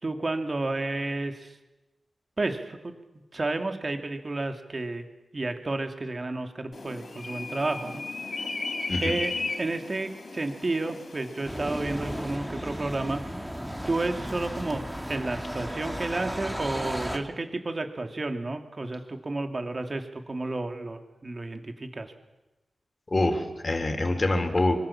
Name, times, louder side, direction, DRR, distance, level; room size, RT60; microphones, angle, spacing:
voice 1, 0.0-1.5 2.4-2.9 3.3-5.0 5.3-8.0 9.0-9.3 9.6-13.2 13.9-22.1, right 2 dB, 40° right, 6 dB, 2.8 m, -31 dB
sound 1, 6.7-12.4, left 3 dB, 60° left, 3.9 m, -36 dB
sound 2, 11.5-17.2, equal, 5° right, 2.8 m, -34 dB
voice 2, 23.1-24.8, left 2 dB, 35° left, 4 dB, 4.0 m, -25 dB
25.0 x 25.0 x 7.4 m, 1.0 s
wide cardioid pair, 70°, 0 cm